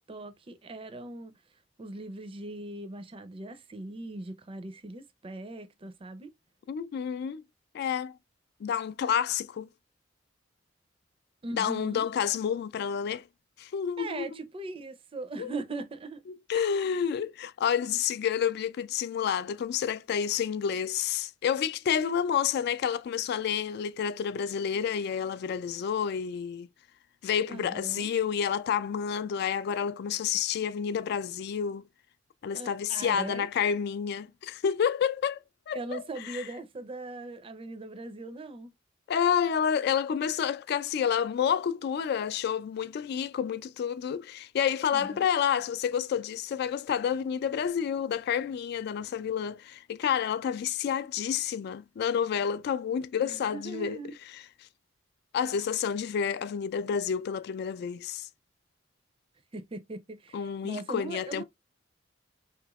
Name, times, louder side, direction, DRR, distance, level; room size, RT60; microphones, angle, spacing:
voice 1, 0.0-1.3 1.8-6.3 11.4-12.1 14.0-16.2 16.5-16.8 27.5-28.1 32.5-33.5 35.7-38.7 44.9-45.3 53.2-54.2 59.5-61.4, right 2 dB, 30° right, 0.5 m, -40 dB
voice 2, 6.7-7.4 7.7-8.2 8.6-9.7 11.5-13.2 13.6-14.4 15.4-15.5 16.5-26.7 27.2-31.8 32.4-35.4 35.7-36.4 39.1-54.4 55.3-58.3 60.3-61.4, left 8 dB, 55° left, 0.3 m, -29 dB
3.3 x 3.0 x 2.3 m
head